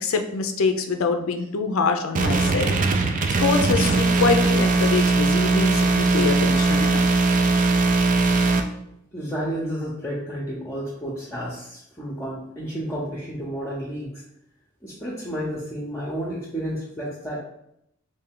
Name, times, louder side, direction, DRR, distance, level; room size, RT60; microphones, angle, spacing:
voice 1, 0.0-2.8 3.4-7.0, left 4 dB, 75° left, 5 dB, 0.4 m, -24 dB
sound 1, 2.1-8.6, right 3 dB, 40° right, 0.4 m, -20 dB
voice 2, 9.1-14.2 14.8-17.4, equal, 15° left, -5 dB, 0.6 m, -31 dB
3.3 x 2.7 x 3.6 m, 0.76 s
head